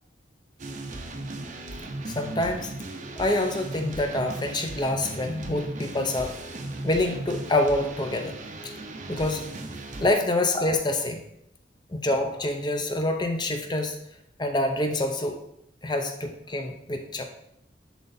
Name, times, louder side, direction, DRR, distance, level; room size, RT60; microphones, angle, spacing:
sound 1, 0.6-10.1, right 2 dB, 40° right, 0.7 m, -37 dB
voice 1, 2.1-2.7 3.2-6.4 6.8-8.3 8.6-8.7 9.1-9.5 10.0-11.2 11.9-14.0 14.4-15.4 15.8-17.2, left 1 dB, 25° left, 4 dB, 0.7 m, -26 dB
10.5 x 3.8 x 4.1 m, 0.78 s
head